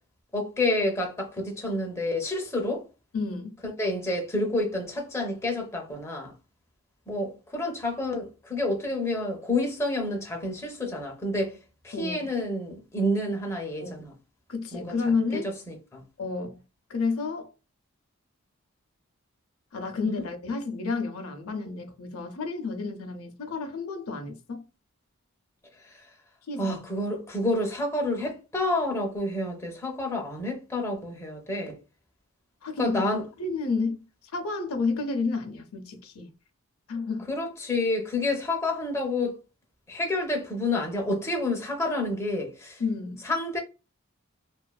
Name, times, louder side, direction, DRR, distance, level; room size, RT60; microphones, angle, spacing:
voice 1, 0.3-2.8 3.8-6.3 7.1-11.6 11.8-14.1 14.7-14.9 15.3-15.4 15.7-16.0 20.0-20.2 25.8-26.0 26.6-31.8 32.8-33.2 37.3-39.4 39.9-42.8 43.2-43.6, left 2 dB, 15° left, 0.5 m, -29 dB
voice 2, 3.1-3.6 11.9-12.3 13.8-14.0 14.5-15.5 16.2-16.6 16.9-17.5 19.7-24.6 26.5-26.8 32.6-33.0 33.4-34.0 34.3-36.3 36.9-37.3 42.8-43.3, left 4 dB, 80° left, 0.5 m, -30 dB
2.4 x 2.3 x 2.2 m
head